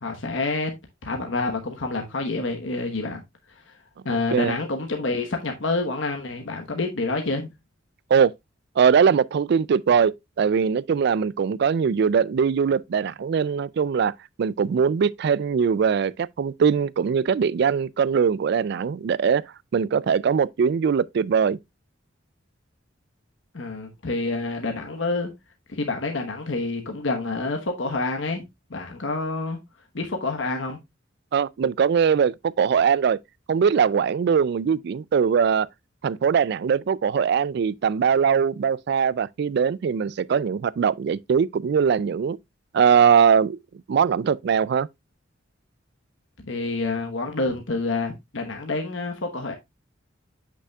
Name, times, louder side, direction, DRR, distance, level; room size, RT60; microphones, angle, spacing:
voice 1, 0.0-0.7 1.0-3.2 3.5-3.8 4.0-7.5 23.5-25.3 25.7-28.4 28.7-29.6 29.9-30.8 46.4-49.5, left 3 dB, 75° left, 1.1 m, -28 dB
voice 2, 8.8-14.1 14.4-19.5 19.7-21.6 31.3-33.2 33.5-35.7 36.0-42.4 42.7-43.6 43.9-44.9, right 6 dB, 55° right, 0.3 m, -21 dB
8.2 x 6.1 x 2.3 m
head